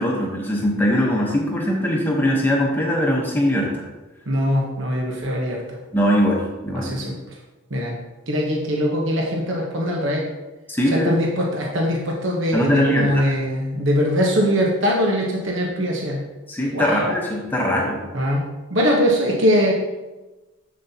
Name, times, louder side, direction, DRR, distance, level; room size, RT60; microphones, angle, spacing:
voice 1, 0.0-3.8 5.9-6.9 10.7-11.1 12.5-13.3 16.5-18.0, equal, 10° left, -2 dB, 0.9 m, -21 dB
voice 2, 4.3-5.6 6.7-7.2 7.7-8.0 8.3-10.2 10.9-16.2 16.7-17.1 18.1-19.8, equal, 60° right, -1 dB, 1.0 m, -21 dB
7.5 x 7.4 x 2.8 m, 1.1 s
head